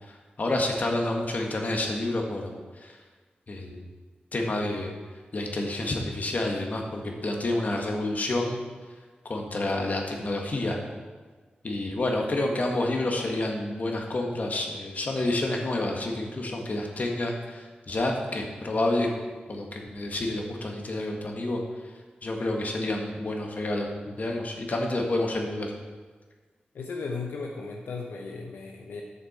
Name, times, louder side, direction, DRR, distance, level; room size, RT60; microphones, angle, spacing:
voice 1, 0.1-2.5 2.8-3.0 3.5-3.9 4.3-4.9 5.3-8.6 9.3-10.8 11.6-19.1 19.5-21.6 22.2-25.7, left 2 dB, 55° left, 1 dB, 1.7 m, -29 dB
voice 2, 26.7-29.0, left 4 dB, 90° left, 1 dB, 0.8 m, -36 dB
10.5 x 7.0 x 4.4 m, 1.4 s
cardioid pair, 55°, 3 cm